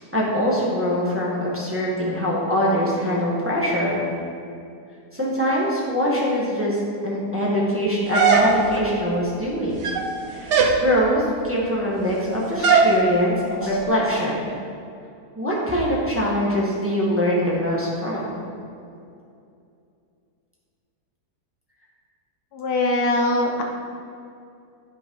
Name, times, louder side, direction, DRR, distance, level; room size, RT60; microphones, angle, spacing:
voice 1, 0.1-4.0 5.1-9.9 10.3-10.6 10.8-14.5 15.4-18.3, equal, 10° right, -5 dB, 1.3 m, -23 dB
sound 1, 8.1-8.9 9.7-10.1 10.5-10.8 12.6-13.0, right 5 dB, 90° right, 1.4 m, -18 dB
voice 2, 22.5-23.6, left 2 dB, 70° left, 1 dB, 1.4 m, -21 dB
11.0 x 3.9 x 5.3 m, 2.5 s
omnidirectional pair, 1.8 m